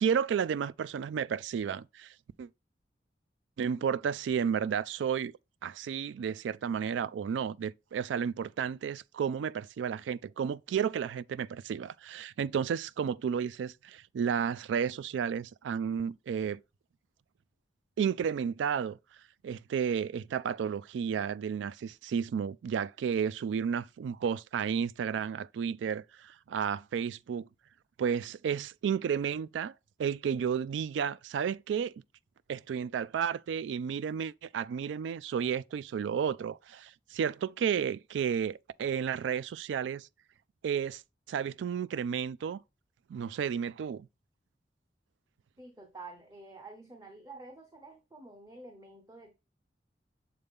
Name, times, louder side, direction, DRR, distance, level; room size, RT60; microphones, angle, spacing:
voice 1, 0.0-2.1 2.4-2.5 3.6-5.3 5.6-16.6 18.0-19.0 19.4-27.5 28.0-29.7 30.0-31.9 32.5-40.1 40.6-41.0 41.3-42.6 43.1-44.1, right 7 dB, 90° right, 0.3 m, -32 dB
voice 2, 45.6-49.4, right 3 dB, 20° right, 0.7 m, -49 dB
6.8 x 3.9 x 3.5 m
head